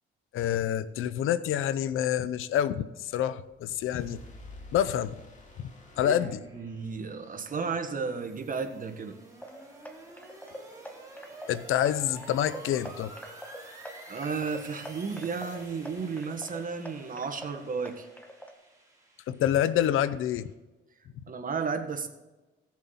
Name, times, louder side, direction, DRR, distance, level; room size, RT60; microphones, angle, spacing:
voice 1, 0.3-4.2 4.7-5.2 5.6-5.7 6.0-6.4 11.5-13.1 19.3-20.5, left 10 dB, 80° left, 15 dB, 0.6 m, -27 dB
sound 1, 3.4-7.1, left 2 dB, 35° left, 2.5 m, -50 dB
sound 2, 4.5-20.5, right 2 dB, 15° right, 3.5 m, -51 dB
voice 2, 6.0-9.2 14.1-18.1 21.3-22.1, right 5 dB, 40° right, 6 dB, 1.5 m, -33 dB
sound 3, 9.4-18.5, equal, 10° left, 1.5 m, -46 dB
17.0 x 7.2 x 4.0 m, 1.1 s
cardioid pair, 90°, 21 cm